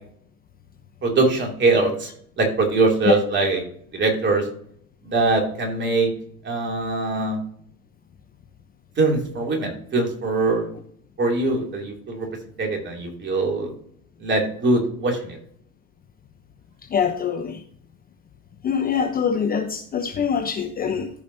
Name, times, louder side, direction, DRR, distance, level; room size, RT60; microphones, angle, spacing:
voice 1, 1.0-2.1 2.4-3.6 3.9-4.5 5.0-6.1 6.4-7.4 9.0-10.7 11.2-12.3 12.6-13.7 14.2-15.4, right 3 dB, 25° right, 1 dB, 2.7 m, -22 dB
voice 2, 16.9-17.6 18.6-21.1, left 7 dB, 20° left, 4 dB, 0.9 m, -24 dB
14.5 x 5.2 x 2.7 m, 0.64 s
hypercardioid pair, 105°, 43 cm